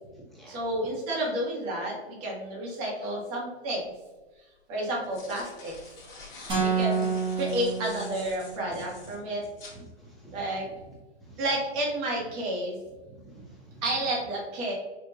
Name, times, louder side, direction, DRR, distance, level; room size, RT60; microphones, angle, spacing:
voice 1, 0.5-3.9 4.7-5.7 6.6-9.4 10.3-10.6 11.4-12.8 13.8-14.7, right 1 dB, 35° right, -3 dB, 1.5 m, -31 dB
sound 1, 3.7-3.8 4.8-9.8, left 3 dB, 30° left, 1.4 m, -47 dB
sound 2, 6.5-8.6, right 5 dB, 15° right, 1.2 m, -28 dB
voice 2, 9.7-10.4 11.2-11.5 13.1-13.8, right 2 dB, ahead, -6 dB, 0.7 m, -49 dB
4.8 x 2.8 x 2.6 m, 1.2 s
hypercardioid pair, 145°, 33 cm